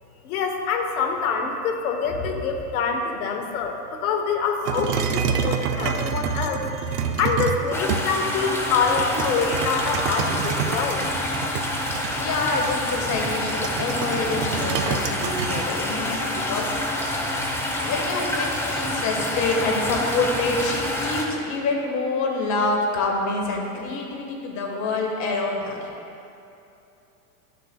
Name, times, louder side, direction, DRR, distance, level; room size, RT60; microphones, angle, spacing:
voice 1, 0.2-11.0, left 5 dB, 65° left, 4 dB, 1.1 m, -25 dB
sound 1, 4.7-8.3 9.0-15.6, right 7 dB, 85° right, 0.7 m, -28 dB
sound 2, 7.7-21.3, left 1 dB, 5° left, 0.7 m, -27 dB
voice 2, 12.2-16.7 17.8-25.8, left 3 dB, 40° left, 1 dB, 1.6 m, -26 dB
12.0 x 6.6 x 2.3 m, 2.7 s
hypercardioid pair, 110°, 46 cm